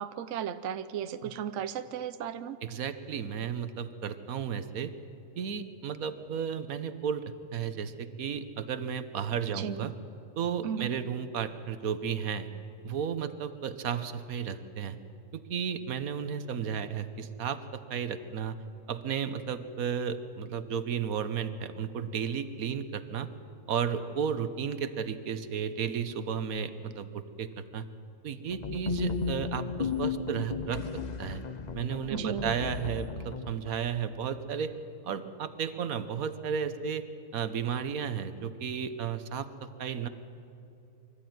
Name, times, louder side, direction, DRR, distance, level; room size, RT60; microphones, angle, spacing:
voice 1, 0.0-2.6 9.5-9.9 10.6-10.9 32.1-32.5 33.6-33.7, right 8 dB, 65° right, 12 dB, 1.0 m, -35 dB
voice 2, 2.6-4.9 5.4-7.2 7.5-9.9 10.4-12.5 12.8-15.0 15.3-18.6 18.9-23.3 23.7-27.9 28.2-31.4 31.7-34.7 35.0-37.1 37.3-39.5 39.8-40.1, right 7 dB, 85° right, 11 dB, 1.4 m, -33 dB
sound 1, 28.5-33.5, left 5 dB, 40° left, 0.7 m, -35 dB
24.5 x 13.5 x 9.3 m, 2.8 s
omnidirectional pair, 1.5 m